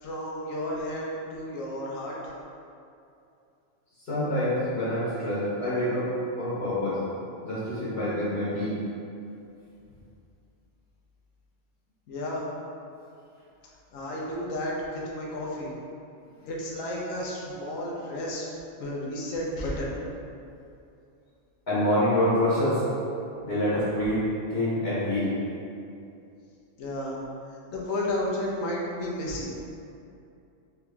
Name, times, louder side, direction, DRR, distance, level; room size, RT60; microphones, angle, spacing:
voice 1, 0.0-2.2 12.1-12.4 13.9-15.7 16.5-18.5 18.8-19.9 26.8-27.2 27.7-29.5, left 1 dB, 90° left, -3 dB, 1.1 m, -32 dB
voice 2, 4.0-7.0 7.4-8.8 21.7-22.8 23.4-24.2 24.5-25.4, left 1 dB, 55° left, -11 dB, 1.2 m, -26 dB
3.5 x 3.0 x 3.4 m, 2.6 s
omnidirectional pair, 1.3 m